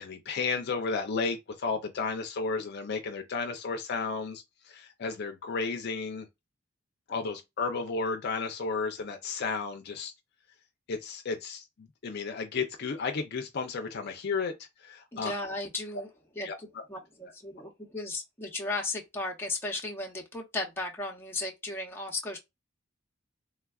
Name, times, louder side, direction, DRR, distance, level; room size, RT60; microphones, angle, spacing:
voice 1, 0.0-6.3 7.1-10.1 10.9-15.3 16.4-16.5, left 4 dB, 55° left, 0.4 m, -33 dB
voice 2, 15.1-16.1 16.4-22.4, left 2 dB, 10° left, 0.7 m, -35 dB
3.3 x 2.3 x 2.3 m
head